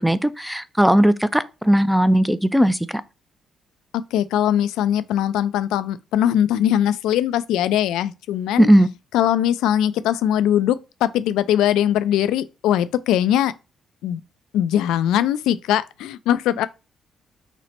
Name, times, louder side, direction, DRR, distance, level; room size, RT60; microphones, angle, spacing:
voice 1, 0.0-2.8 8.6-8.9, equal, 5° right, 0.4 m, -17 dB
voice 2, 4.1-8.7 9.1-13.5 14.0-14.2 14.5-16.7, left 11 dB, 90° left, 0.3 m, -21 dB
5.8 x 2.1 x 4.3 m
cardioid pair, 90°, 0 cm